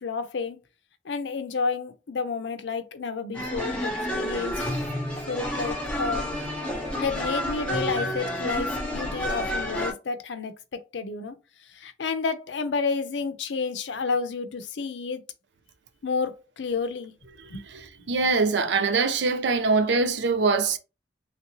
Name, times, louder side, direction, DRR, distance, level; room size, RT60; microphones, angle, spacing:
voice 1, 0.0-0.6 1.0-4.7 5.3-6.2 7.0-11.4 11.7-15.2 16.0-17.1 17.5-17.6, left 4 dB, 80° left, 0.5 m, -30 dB
sound 1, 3.3-9.9, equal, 5° left, 0.9 m, -30 dB
voice 2, 17.4-20.8, right 4 dB, 80° right, 0.5 m, -24 dB
3.1 x 2.7 x 2.9 m
head